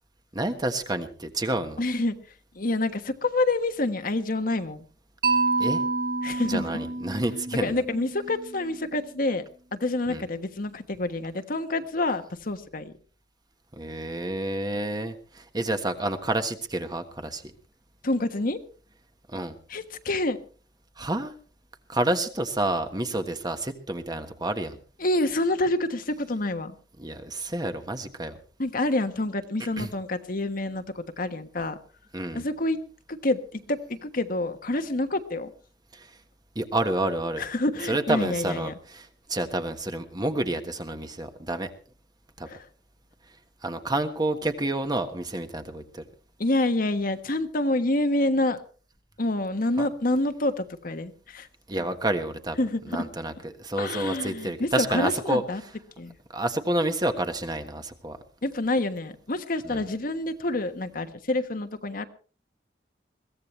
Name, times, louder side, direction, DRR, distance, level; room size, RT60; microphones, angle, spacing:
voice 1, 0.3-1.8 5.6-5.8 6.4-7.8 10.1-10.2 13.7-17.5 19.3-19.6 21.0-21.3 21.9-24.8 27.0-28.4 29.8-29.9 32.1-32.4 35.9-36.1 36.5-37.4 37.9-41.7 42.4-42.5 43.6-46.0 49.8-49.9 51.7-52.6 52.9-55.4 56.3-58.2 59.6-59.8, right 1 dB, 25° right, 8 dB, 1.4 m, -29 dB
voice 2, 1.8-2.1 2.5-4.8 6.2-6.6 7.6-9.4 9.7-12.9 18.0-18.6 19.7-20.4 25.0-26.8 28.6-31.8 32.3-32.8 33.1-35.5 37.4-38.7 42.5-42.7 46.4-48.6 49.2-51.5 52.6-53.0 53.8-55.6 56.0-56.1 58.4-62.0, left 2 dB, 55° left, 8 dB, 1.3 m, -27 dB
Mallet percussion, 5.2-9.2, right 3 dB, 60° right, 4.7 m, -29 dB
22.0 x 16.0 x 3.2 m, 0.38 s
head